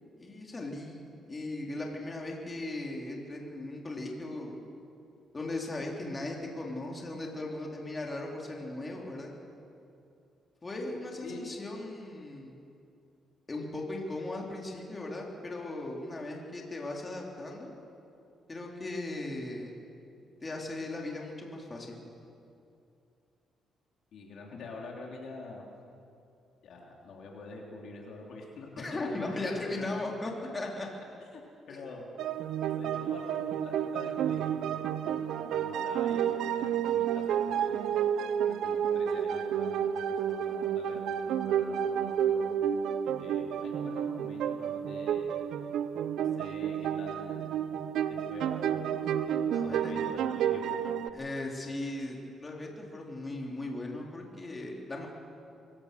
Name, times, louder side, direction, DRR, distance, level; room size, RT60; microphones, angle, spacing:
voice 1, 0.2-4.6 5.3-9.3 10.6-12.5 13.5-17.7 18.5-19.7 20.4-22.1 28.8-30.9 31.7-31.8 49.5-49.9 51.1-55.1, left 2 dB, 25° left, -1 dB, 3.4 m, -38 dB
voice 2, 24.1-25.6 26.6-30.0 31.2-31.4 31.7-32.0 32.6-37.8 38.4-40.0 40.3-42.5 43.2-45.3 46.2-47.5 48.3-51.0, left 3 dB, 70° left, -1 dB, 3.5 m, -46 dB
sound 1, 32.2-51.1, right 9 dB, 80° right, 0.7 m, -30 dB
24.0 x 16.5 x 6.8 m, 2.6 s
cardioid pair, 90°, 0 cm